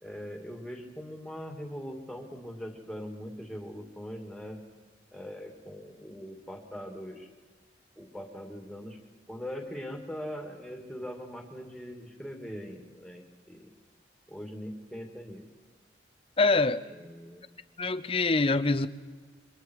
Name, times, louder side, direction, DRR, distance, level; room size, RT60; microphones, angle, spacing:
voice 1, 0.0-4.6 5.1-7.3 8.0-9.0 9.3-13.7 14.3-15.4 16.9-17.4, equal, ahead, 2 dB, 2.8 m, -41 dB
voice 2, 16.4-16.8 17.8-18.9, left 3 dB, 30° left, 12 dB, 0.7 m, -24 dB
27.0 x 24.0 x 4.8 m, 1.4 s
head